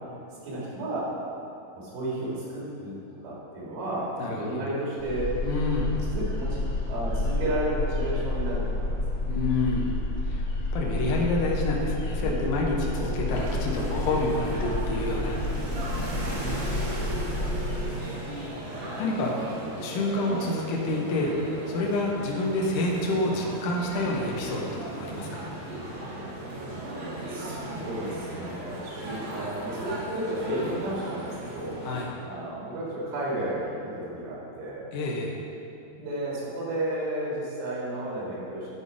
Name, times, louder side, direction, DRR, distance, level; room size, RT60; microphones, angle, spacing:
voice 1, 0.4-1.1 1.7-2.9 3.2-5.3 6.1-6.6 6.9-9.2 12.1-13.1 20.2-20.5 27.3-31.9 32.2-34.8 36.0-38.7, right 1 dB, 75° right, -6 dB, 4.1 m, -33 dB
voice 2, 4.2-4.7 5.4-6.0 9.3-9.9 10.3-10.5 10.7-15.4 19.0-19.4 19.7-21.3 21.7-25.6 31.8-32.1 34.9-35.4, left 2 dB, 80° left, -2 dB, 1.8 m, -28 dB
sound 1, 5.0-17.9, left 2 dB, 65° left, 1.3 m, -30 dB
sound 2, 13.3-32.0, right 1 dB, 60° right, 2.7 m, -36 dB
11.0 x 4.1 x 4.9 m, 2.8 s
omnidirectional pair, 4.9 m